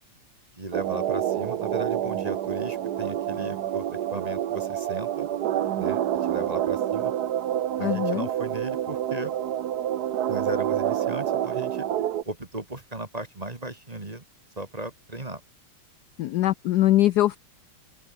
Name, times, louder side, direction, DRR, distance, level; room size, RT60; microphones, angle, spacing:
voice 1, 0.6-5.3 5.8-7.1 7.8-9.3 10.3-11.9 12.2-14.2 14.6-15.4, right 2 dB, 20° right, 2.1 m, -36 dB
sound 1, 0.7-12.2, right 11 dB, 60° right, 1.2 m, -28 dB
voice 2, 7.8-8.3 16.2-17.4, left 14 dB, 75° left, 0.9 m, -22 dB
open air
omnidirectional pair, 2.3 m